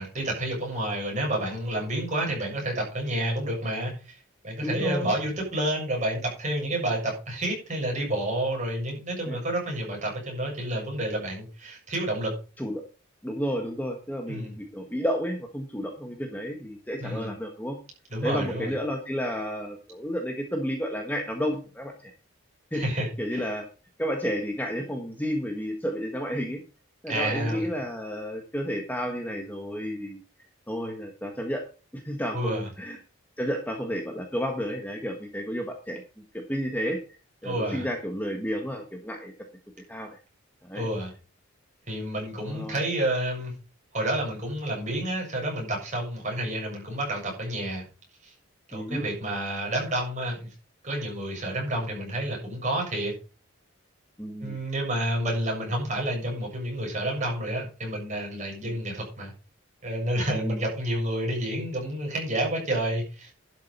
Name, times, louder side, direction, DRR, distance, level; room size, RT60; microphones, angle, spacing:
voice 1, 0.0-4.2 4.4-12.3 14.3-14.5 17.0-17.3 18.1-18.7 22.7-23.5 27.1-27.7 32.3-32.7 37.4-37.9 40.7-41.1 41.9-43.5 43.9-47.9 48.2-48.3 48.7-50.5 50.8-53.1 54.4-59.3 59.8-63.3, right 1 dB, 35° right, -1 dB, 7.1 m, -29 dB
voice 2, 4.6-5.1 9.2-9.4 12.6-12.8 13.2-17.8 18.2-22.1 22.7-22.8 23.2-23.6 24.0-26.6 27.0-30.2 30.7-31.6 31.9-33.0 33.4-36.0 36.3-37.0 37.4-39.3 39.9-40.2 40.6-40.9 42.4-42.8 48.7-49.0 54.2-54.6 58.6-58.7 60.3-60.6, equal, 10° left, 3 dB, 1.5 m, -31 dB
12.0 x 7.5 x 5.6 m, 0.33 s
head